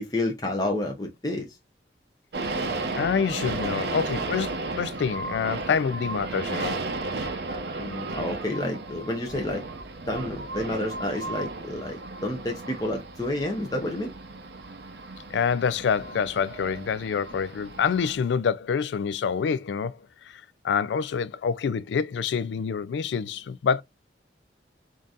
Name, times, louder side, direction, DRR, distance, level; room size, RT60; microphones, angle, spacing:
voice 1, 0.0-1.5 7.8-9.6 10.1-14.1, left 1 dB, 20° left, 0.6 m, -30 dB
sound 1, 2.3-18.2, right 3 dB, 65° right, 0.6 m, -34 dB
voice 2, 3.0-6.8 15.3-23.8, left 6 dB, 80° left, 0.3 m, -27 dB
3.7 x 2.6 x 2.3 m
head